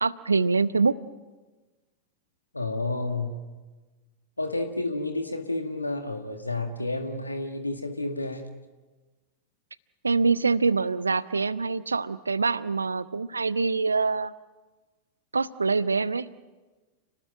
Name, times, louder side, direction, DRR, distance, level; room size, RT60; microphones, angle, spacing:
voice 1, 0.0-1.0 10.0-14.3 15.3-16.3, right 4 dB, 75° right, 17 dB, 0.8 m, -25 dB
voice 2, 2.5-3.4 4.4-8.5, left 2 dB, 85° left, 6 dB, 1.9 m, -30 dB
30.0 x 19.0 x 9.1 m, 1.2 s
figure-of-eight pair, 90°, 0 cm